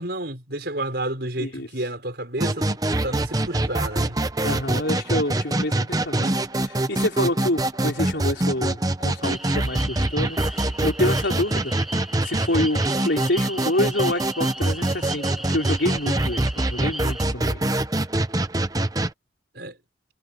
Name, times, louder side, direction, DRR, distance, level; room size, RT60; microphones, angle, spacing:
voice 1, 0.0-4.2 19.5-19.8, right 1 dB, 60° right, 5.8 m, -30 dB
voice 2, 1.4-1.7 4.4-11.7 12.2-17.6, left 1 dB, 70° left, 4.5 m, -27 dB
sound 1, 2.4-19.1, right 1 dB, 20° right, 0.8 m, -24 dB
sound 2, 9.2-17.2, equal, ahead, 2.6 m, -38 dB
head